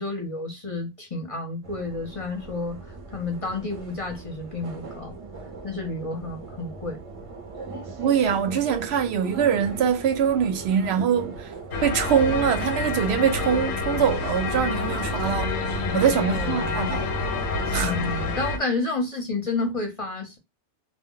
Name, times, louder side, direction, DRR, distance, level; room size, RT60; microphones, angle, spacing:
voice 1, 0.0-2.8 3.1-5.1 5.6-7.0 15.9-16.8 17.7-20.4, left 3 dB, 35° left, 0.6 m, -30 dB
sound 1, 1.6-18.4, right 4 dB, 40° right, 0.5 m, -39 dB
sound 2, 6.6-6.7 6.9-7.0 7.5-7.6 8.1-8.5 9.8-9.9 10.8-11.1 12.1-12.2 13.0-13.1 13.4-13.7 14.8-15.1 16.8-17.2, left 1 dB, 10° right, 1.0 m, -46 dB
voice 2, 8.0-11.5 11.8-17.0 17.7-17.9, right 8 dB, 70° right, 0.8 m, -23 dB
sound 3, 11.7-18.6, left 4 dB, 70° left, 0.8 m, -28 dB
2.2 x 2.1 x 3.7 m
omnidirectional pair, 1.2 m